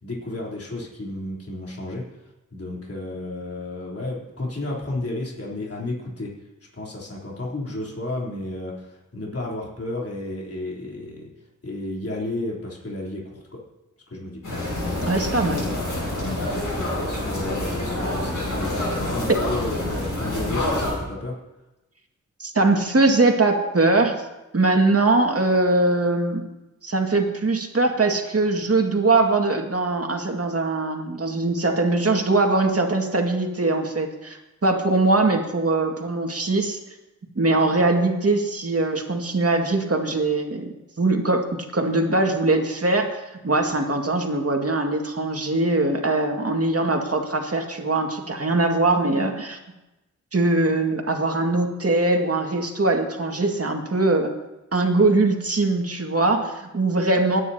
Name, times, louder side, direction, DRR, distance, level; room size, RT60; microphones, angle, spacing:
voice 1, 0.0-6.5 6.7-11.3 11.6-13.7 14.1-14.5 16.9-21.4, left 2 dB, 50° left, -4 dB, 3.5 m, -32 dB
sound 1, 14.4-20.9, left 1 dB, 85° left, 6.0 m, -27 dB
voice 2, 15.0-15.7 22.4-24.2 24.5-26.5 26.8-36.8 37.4-49.6 50.3-54.3 54.7-57.4, right 2 dB, 50° right, 2 dB, 2.0 m, -21 dB
27.0 x 9.8 x 2.8 m, 1.0 s
cardioid pair, 50°, 31 cm